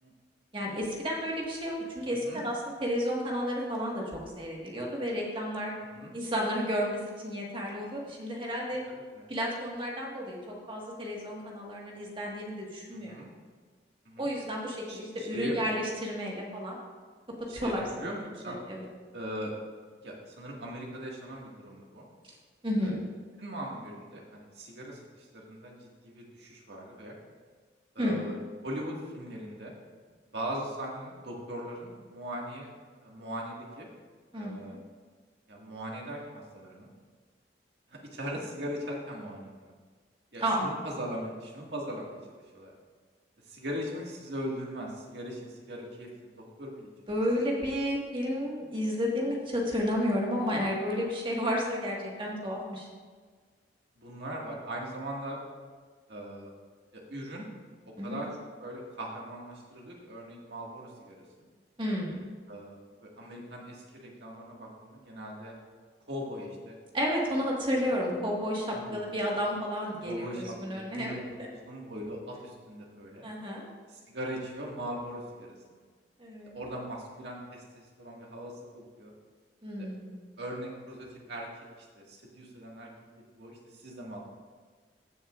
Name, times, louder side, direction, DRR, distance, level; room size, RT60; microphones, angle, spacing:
voice 1, 0.5-5.7 6.1-8.8 9.3-13.1 14.2-16.8 17.5-18.1 18.5-18.8 22.6-23.0 28.0-28.2 34.3-34.8 40.4-40.7 47.1-52.9 58.0-58.2 61.8-62.2 66.9-71.2 73.2-73.6 76.2-76.5 79.6-80.2, equal, 30° right, -2 dB, 1.6 m, -32 dB
voice 2, 8.9-9.2 12.9-13.3 14.1-14.3 14.9-15.6 17.5-18.6 19.1-19.5 20.0-22.1 22.8-23.0 23.4-27.2 28.0-28.3 28.6-29.7 30.3-32.7 33.0-33.9 34.3-34.8 35.5-36.9 37.9-39.7 40.3-42.7 43.4-46.9 54.0-55.4 56.1-56.5 56.9-57.5 57.9-58.3 58.6-61.5 62.5-65.5 66.1-66.8 67.8-67.9 68.7-69.0 70.0-73.3 73.9-75.8 76.5-79.1 79.8-79.9 80.4-81.5 81.8-82.9 83.3-84.2, equal, 70° right, -2 dB, 1.8 m, -40 dB
15.5 x 6.9 x 2.4 m, 1.5 s
head